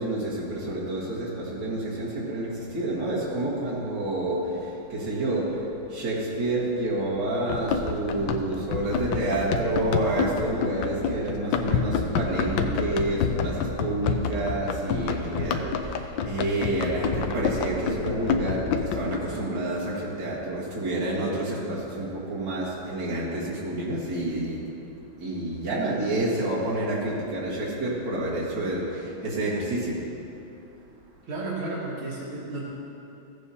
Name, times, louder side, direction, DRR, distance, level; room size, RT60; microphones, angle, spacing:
voice 1, 0.0-24.6 25.2-30.1, right 1 dB, 60° right, -7 dB, 2.4 m, -29 dB
Run, 7.5-19.2, left 6 dB, 75° left, 1.3 m, -28 dB
voice 2, 31.3-32.6, right 2 dB, 80° right, -7 dB, 2.4 m, -32 dB
15.5 x 8.2 x 2.8 m, 2.8 s
omnidirectional pair, 2.2 m